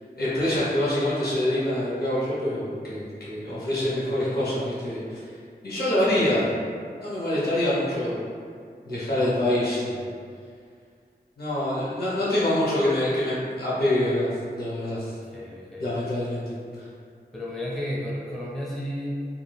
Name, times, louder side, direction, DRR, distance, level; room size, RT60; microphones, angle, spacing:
voice 1, 0.2-5.2 5.6-6.4 7.0-8.2 8.8-10.1 11.4-15.2 15.8-16.9, left 1 dB, 65° left, -9 dB, 1.0 m, -25 dB
voice 2, 15.1-15.9 17.3-19.2, equal, ahead, -5 dB, 0.4 m, -33 dB
2.6 x 2.2 x 3.3 m, 2.2 s
wide cardioid pair, 80°, 17 cm